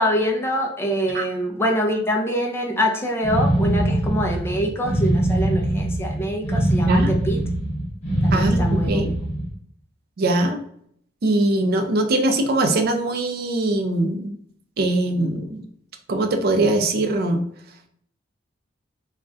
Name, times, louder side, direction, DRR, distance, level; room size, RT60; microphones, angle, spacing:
voice 1, 0.0-7.4 8.2-9.0, equal, 15° left, 1 dB, 0.4 m, -25 dB
sound 1, 3.2-9.5, right 1 dB, 45° left, 0.8 m, -22 dB
voice 2, 8.3-9.2 10.2-10.6 11.2-14.3 14.8-15.6 16.1-17.4, right 2 dB, 55° right, 6 dB, 0.4 m, -21 dB
2.5 x 2.1 x 3.5 m, 0.65 s
head